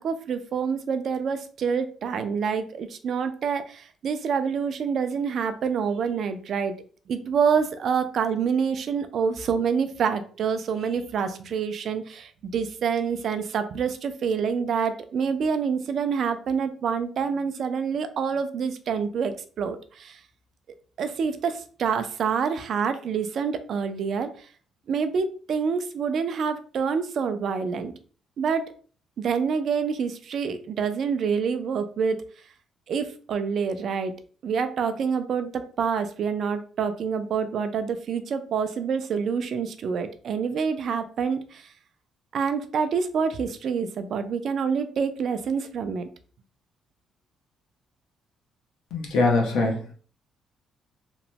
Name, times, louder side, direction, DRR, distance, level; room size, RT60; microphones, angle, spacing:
voice 1, 0.0-6.8 7.1-20.2 21.0-24.3 24.9-27.9 28.4-28.6 29.2-32.2 32.9-34.1 34.4-41.7 42.3-46.1, right 6 dB, 50° right, 9 dB, 0.3 m, -27 dB
voice 2, 48.9-49.9, left 3 dB, 85° left, 1 dB, 0.8 m, -23 dB
2.9 x 2.1 x 2.7 m, 0.42 s
cardioid pair, 155°, 0 cm